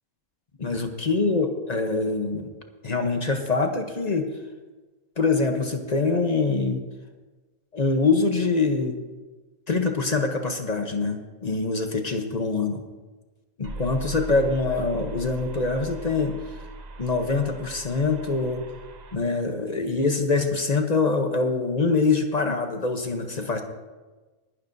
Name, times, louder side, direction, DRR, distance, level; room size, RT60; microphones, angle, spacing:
voice 1, 0.6-2.5 2.8-4.3 5.2-6.8 7.7-9.0 9.7-12.8 13.6-16.4 17.0-18.6 19.1-23.6, left 3 dB, 35° left, 5 dB, 0.8 m, -24 dB
sound 1, 13.6-19.2, right 2 dB, 45° right, 0.6 m, -39 dB
19.5 x 11.0 x 2.7 m, 1.3 s
omnidirectional pair, 1.5 m